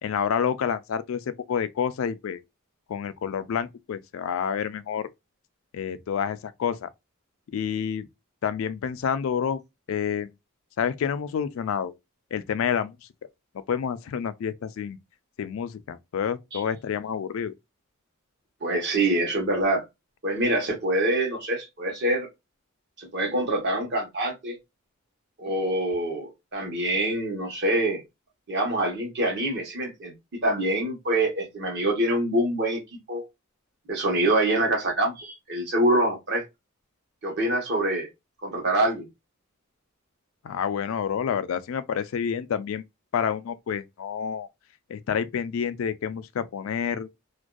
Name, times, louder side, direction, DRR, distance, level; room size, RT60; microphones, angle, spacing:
voice 1, 0.0-2.4 2.9-5.1 5.7-6.9 7.5-8.1 8.4-9.6 9.9-10.3 10.8-11.9 12.3-13.0 13.7-15.0 15.4-17.5 40.4-42.8 43.1-44.5 44.9-47.1, left 7 dB, 70° left, 0.3 m, -28 dB
voice 2, 18.6-19.8 20.2-22.3 23.0-24.6 25.4-28.0 28.5-32.8 33.1-33.2 33.9-36.4 37.2-38.1 38.4-39.1, right 1 dB, 55° right, 1.0 m, -25 dB
2.5 x 2.2 x 2.2 m
head